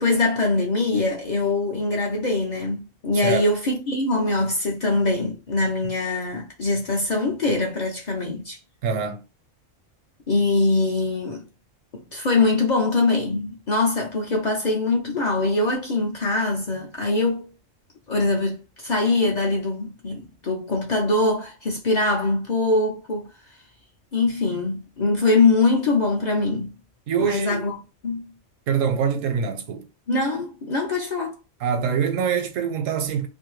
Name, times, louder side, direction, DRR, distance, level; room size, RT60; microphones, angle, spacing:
voice 1, 0.0-8.6 10.3-11.4 11.9-17.5 18.1-23.3 24.1-26.7 27.2-27.8 28.0-28.3 30.1-31.3, left 3 dB, 50° left, 0.5 m, -23 dB
voice 2, 8.8-9.2 27.1-27.7 28.7-29.9 31.6-33.3, right 7 dB, 85° right, 1.0 m, -24 dB
2.6 x 2.6 x 3.0 m
omnidirectional pair, 1.3 m